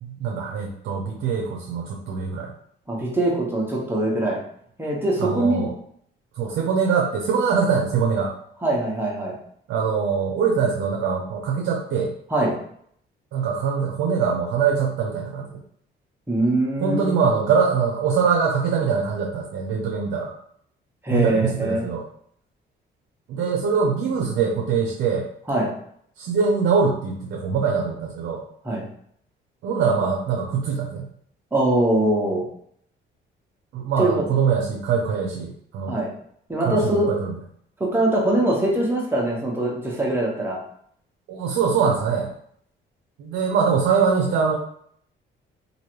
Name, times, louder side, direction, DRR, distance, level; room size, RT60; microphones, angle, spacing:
voice 1, 0.0-2.5 5.2-5.7 6.4-8.3 9.7-12.1 13.3-15.6 16.8-20.3 21.1-22.0 23.3-25.3 26.2-28.4 29.6-31.1 33.7-36.0 36.6-37.3 41.3-42.3 43.2-44.6, right 6 dB, 85° right, 0 dB, 0.6 m, -23 dB
voice 2, 2.9-4.4 4.8-5.7 8.6-9.3 12.3-12.6 16.3-17.2 21.0-21.9 25.5-25.7 28.6-28.8 31.5-32.4 34.0-34.2 35.9-36.1 36.5-37.1 37.8-40.6, right 1 dB, 10° right, -3 dB, 1.1 m, -22 dB
3.1 x 2.6 x 3.0 m, 0.66 s
cardioid pair, 90°, 20 cm